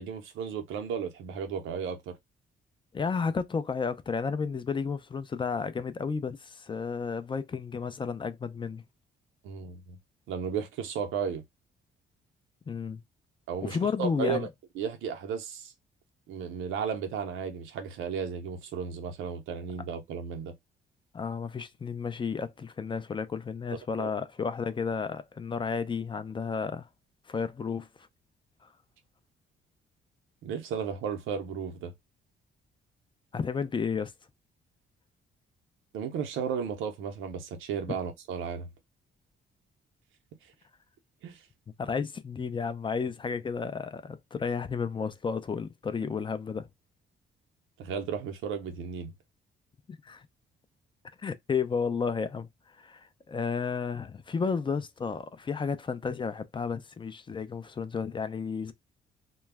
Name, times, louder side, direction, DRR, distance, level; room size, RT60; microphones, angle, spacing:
voice 1, 0.0-2.2 9.4-10.0 10.3-11.4 13.5-14.5 14.8-15.7 16.3-20.5 23.7-24.1 30.4-31.9 35.9-38.7 41.2-41.5 47.8-49.1, right 7 dB, 90° right, 0.7 m, -34 dB
voice 2, 2.9-8.8 12.7-13.0 13.6-14.5 21.1-26.9 27.3-27.9 28.6-28.7 33.3-34.1 41.8-46.7 49.9-50.3 51.2-52.5 52.8-58.7, left 5 dB, 25° left, 0.4 m, -32 dB
2.2 x 2.0 x 3.3 m
cardioid pair, 90°, 20 cm